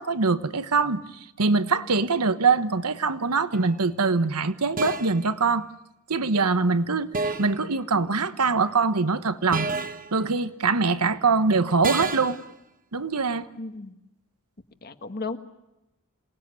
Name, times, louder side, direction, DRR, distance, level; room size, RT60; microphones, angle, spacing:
voice 1, 0.0-5.7 6.1-9.7 10.1-12.4 12.9-13.5, right 4 dB, 85° right, 12 dB, 1.2 m, -23 dB
sound 1, 3.5-3.8 4.8-5.3 7.1-7.6 9.5-10.1 11.8-12.4, right 3 dB, 40° right, 1.1 m, -30 dB
voice 2, 13.6-14.0 14.8-15.4, left 3 dB, 45° left, 8 dB, 1.5 m, -34 dB
27.5 x 19.0 x 9.7 m, 0.93 s
head